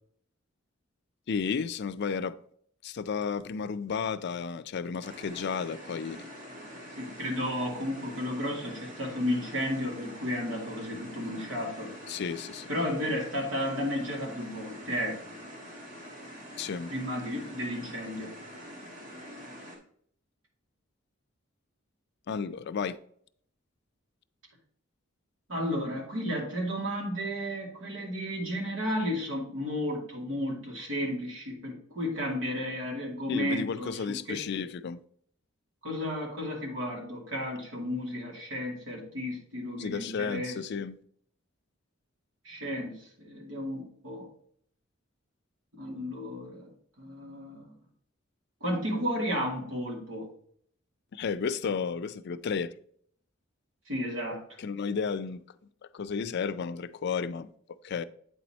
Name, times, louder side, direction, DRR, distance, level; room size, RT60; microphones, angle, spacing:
voice 1, 1.3-2.4 2.8-6.3 12.1-12.7 16.6-16.9 22.3-23.0 33.3-35.0 39.8-41.0 51.1-52.7 54.6-55.4 55.9-57.5 57.8-58.0, left 6 dB, 55° left, 0.4 m, -32 dB
sound 1, 5.0-19.8, equal, 40° right, 1.9 m, -45 dB
voice 2, 7.0-11.9 12.7-15.2 16.9-18.3 25.5-34.6 35.8-40.6 42.4-44.3 45.7-46.7 47.0-47.7 48.6-50.3 53.9-54.4, equal, 75° right, 2.5 m, -33 dB
8.7 x 4.1 x 4.3 m
head